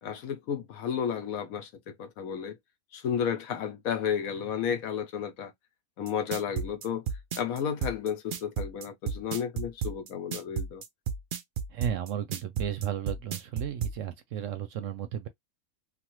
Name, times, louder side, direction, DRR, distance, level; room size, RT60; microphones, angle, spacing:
voice 1, 0.0-2.6 2.9-5.5 6.0-7.0 7.4-10.8, left 8 dB, 70° left, 1.1 m, -32 dB
sound 1, 6.1-14.0, right 7 dB, 85° right, 0.4 m, -32 dB
voice 2, 11.7-15.3, right 9 dB, 70° right, 0.8 m, -34 dB
3.4 x 2.2 x 2.9 m
omnidirectional pair, 1.6 m